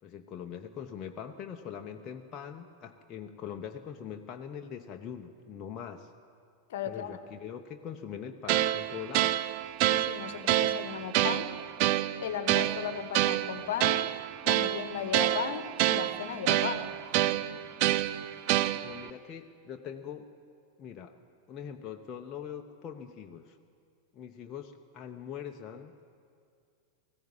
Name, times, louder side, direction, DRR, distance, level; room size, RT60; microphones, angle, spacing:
voice 1, 0.0-6.1 6.9-9.4 18.8-20.3 20.8-21.1 21.5-23.6 24.1-26.0, left 8 dB, 30° left, 3 dB, 0.9 m, -42 dB
voice 2, 6.7-7.2 9.8-11.5 12.1-14.0 14.4-17.3, left 8 dB, 55° left, 11 dB, 1.2 m, -36 dB
sound 1, 8.5-19.1, right 14 dB, 45° right, 0.5 m, -28 dB
19.5 x 16.0 x 9.0 m, 2.3 s
figure-of-eight pair, 90°, 0 cm